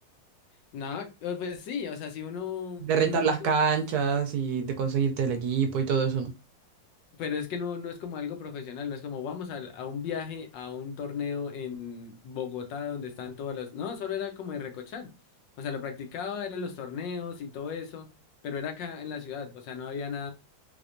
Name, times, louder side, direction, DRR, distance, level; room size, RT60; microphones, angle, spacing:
voice 1, 0.7-3.3 7.2-15.1 15.6-18.1 18.4-20.3, left 6 dB, 75° left, 1.4 m, -35 dB
voice 2, 2.8-6.3, right 6 dB, 70° right, 0.9 m, -26 dB
3.5 x 3.4 x 2.5 m
omnidirectional pair, 2.1 m